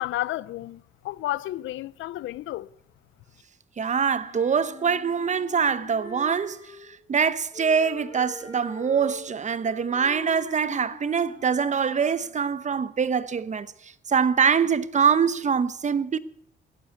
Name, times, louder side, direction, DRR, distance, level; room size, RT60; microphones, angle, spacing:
voice 1, 0.0-2.7, left 15 dB, 75° left, 0.5 m, -31 dB
voice 2, 3.8-16.2, right 6 dB, 35° right, 0.9 m, -24 dB
Wind instrument woodwind instrument, 4.1-7.0 7.5-12.4, left 2 dB, 25° left, 6.6 m, -43 dB
14.5 x 10.5 x 8.2 m
cardioid pair, 90°, 20 cm